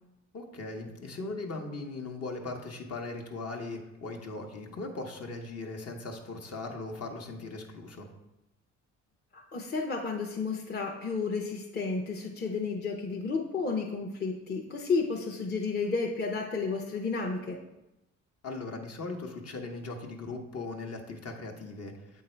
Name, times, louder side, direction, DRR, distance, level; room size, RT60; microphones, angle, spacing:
voice 1, 0.3-8.1 18.4-22.2, left 3 dB, 55° left, 2 dB, 1.1 m, -39 dB
voice 2, 9.3-17.6, left 4 dB, 35° left, 0 dB, 0.8 m, -32 dB
7.8 x 3.7 x 4.4 m, 0.94 s
cardioid pair, 90°, 30 cm